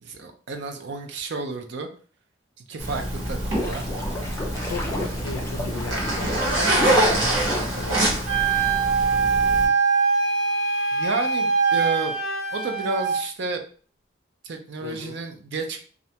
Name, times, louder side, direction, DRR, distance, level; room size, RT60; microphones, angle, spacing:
voice 1, 0.0-1.9 2.7-3.8 10.9-12.1 12.5-13.6 14.4-15.8, right 3 dB, 65° right, 4 dB, 0.5 m, -31 dB
Zipper (clothing), 2.8-9.7, right 1 dB, 80° right, 1.1 m, -25 dB
sound 1, 3.2-8.6, left 1 dB, 15° left, 0.4 m, -32 dB
voice 2, 4.7-8.9 14.8-15.2, left 4 dB, 85° left, 8 dB, 0.4 m, -38 dB
Wind instrument woodwind instrument, 8.3-13.2, right 5 dB, ahead, 0.9 m, -22 dB
2.4 x 2.1 x 2.7 m, 0.42 s
head